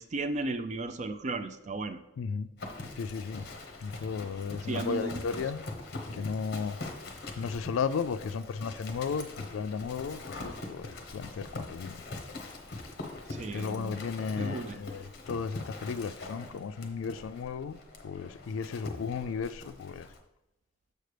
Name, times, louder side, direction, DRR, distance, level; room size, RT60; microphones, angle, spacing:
voice 1, 0.0-2.0 4.6-5.4 13.3-14.0 14.4-14.8, right 2 dB, 35° right, 0.3 m, -35 dB
voice 2, 2.2-2.5 3.0-3.5 3.8-5.7 6.1-6.8 7.4-12.0 13.5-17.8 18.0-20.1, left 5 dB, 80° left, 0.3 m, -34 dB
Livestock farm animals working animals, 2.6-20.2, left 2 dB, 55° left, 0.8 m, -43 dB
6.6 x 6.5 x 3.3 m
head